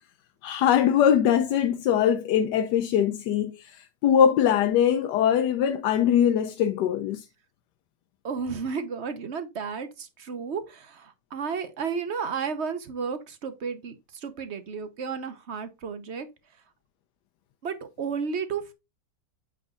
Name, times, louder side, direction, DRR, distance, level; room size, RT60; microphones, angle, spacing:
voice 1, 0.4-7.2, left 9 dB, 75° left, 1.2 m, -22 dB
voice 2, 8.2-16.3 17.6-18.7, right 6 dB, 50° right, 0.9 m, -33 dB
9.0 x 6.1 x 2.4 m
omnidirectional pair, 1.9 m